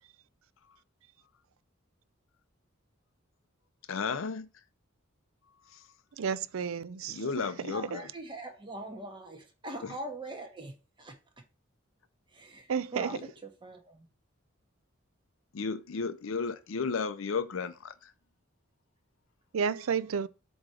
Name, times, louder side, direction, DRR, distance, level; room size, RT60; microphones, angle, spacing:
voice 1, 3.9-4.5 5.7-5.8 7.1-8.1 9.8-9.9 13.1-13.2 15.5-18.1, left 5 dB, 70° left, 0.5 m, -34 dB
voice 2, 6.2-7.3 12.7-13.1 19.5-20.3, right 6 dB, 80° right, 0.5 m, -31 dB
voice 3, 7.7-11.2 12.3-14.1, right 2 dB, 25° right, 1.4 m, -42 dB
7.6 x 3.1 x 4.9 m
head